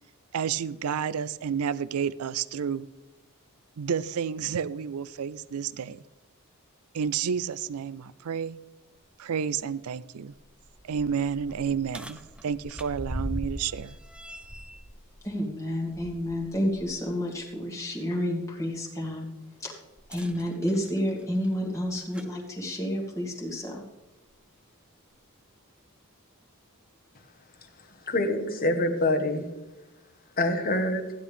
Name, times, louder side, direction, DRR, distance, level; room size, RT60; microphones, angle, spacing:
voice 1, 0.3-2.9 3.8-6.0 6.9-8.6 9.2-10.3 10.8-14.0, right 7 dB, 75° right, 18 dB, 0.4 m, -30 dB
sound 1, 9.0-9.1 9.6-9.7 10.2-16.9 17.4-17.5 20.0-22.4 23.4-23.5 24.3-24.4, equal, 5° right, 0.6 m, -41 dB
voice 2, 15.2-19.3 19.6-19.7 20.1-23.8, equal, 15° left, -2 dB, 1.9 m, -30 dB
voice 3, 28.1-29.4 30.4-31.0, left 1 dB, 40° left, 5 dB, 1.5 m, -25 dB
15.0 x 10.5 x 3.5 m, 1.1 s
head